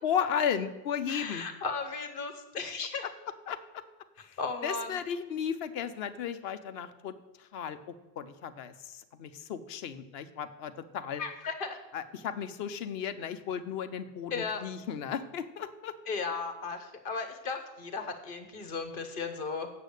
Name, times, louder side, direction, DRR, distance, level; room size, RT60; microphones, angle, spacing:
voice 1, 0.0-1.4 3.0-3.1 3.5-3.6 4.2-4.4 4.6-11.2 11.9-15.9, left 8 dB, 75° left, 12 dB, 0.9 m, -35 dB
voice 2, 1.1-3.1 4.4-5.0 11.2-11.8 14.3-14.6 16.1-19.7, left 4 dB, 60° left, 7 dB, 1.1 m, -35 dB
8.2 x 7.6 x 6.5 m, 1.1 s
omnidirectional pair, 1.0 m